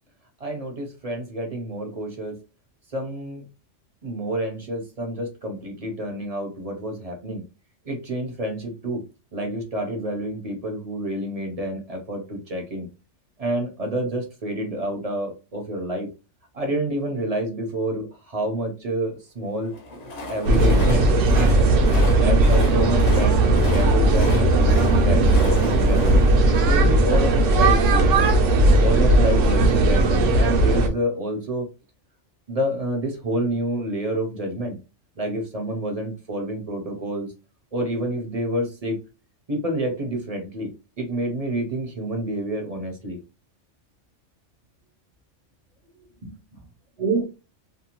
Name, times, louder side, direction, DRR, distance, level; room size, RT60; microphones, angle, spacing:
voice 1, 0.4-2.4 2.9-3.4 4.0-7.4 7.8-9.0 9.3-12.9 13.4-16.1 16.5-19.8 20.3-21.7 22.1-26.2 26.6-28.3 28.8-31.7 32.5-34.8 35.2-37.3 37.7-39.0 39.5-43.2 46.2-46.4 47.0-47.2, right 1 dB, 40° right, 2 dB, 0.7 m, -28 dB
Train, 19.6-27.7, left 1 dB, 50° left, 0.5 m, -35 dB
sound 1, 20.5-30.9, right 2 dB, 80° right, 1.0 m, -17 dB
2.7 x 2.2 x 2.9 m, 0.30 s
omnidirectional pair, 1.2 m